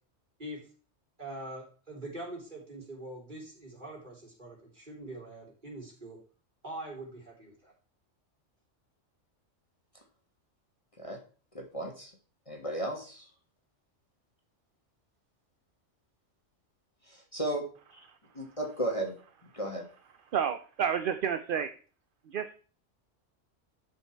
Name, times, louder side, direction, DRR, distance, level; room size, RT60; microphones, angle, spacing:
voice 1, 1.2-6.2 6.6-7.7, right 1 dB, 40° right, -2 dB, 3.7 m, -43 dB
voice 2, 11.5-12.1 12.5-13.3 17.1-17.6 17.9-18.0 18.3-19.1 19.5-19.9, right 1 dB, 25° left, 2 dB, 1.5 m, -34 dB
voice 3, 18.1-18.6 20.3-21.7 22.2-22.5, right 8 dB, 55° right, 9 dB, 0.7 m, -31 dB
11.0 x 5.6 x 4.5 m, 0.39 s
omnidirectional pair, 1.3 m